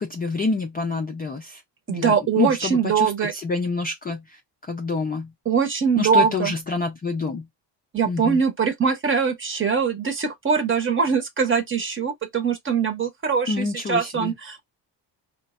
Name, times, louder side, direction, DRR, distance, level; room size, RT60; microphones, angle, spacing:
voice 1, 0.0-1.6 1.9-4.4 4.7-5.3 6.0-7.5 8.0-8.4 13.5-14.3, left 3 dB, 25° left, 0.3 m, -27 dB
voice 2, 1.9-3.3 5.5-6.5 7.9-14.6, right 6 dB, 30° right, 0.8 m, -22 dB
3.9 x 2.2 x 2.3 m
cardioid pair, 175°, 43 cm